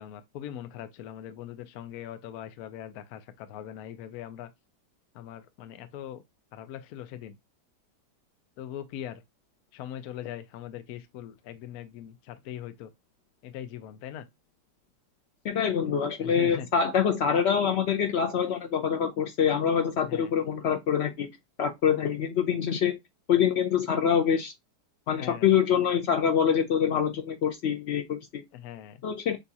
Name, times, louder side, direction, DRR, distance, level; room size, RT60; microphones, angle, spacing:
voice 1, 0.0-4.5 5.1-6.2 6.5-7.4 8.6-9.2 9.7-12.9 13.4-14.3 16.2-16.7 20.0-20.3 25.1-25.5 28.5-29.0, left 11 dB, 70° left, 1.0 m, -41 dB
voice 2, 15.4-21.3 21.6-23.0 23.3-24.5 25.1-28.4 29.0-29.4, left 8 dB, 85° left, 0.5 m, -25 dB
6.8 x 2.4 x 2.7 m
omnidirectional pair, 1.8 m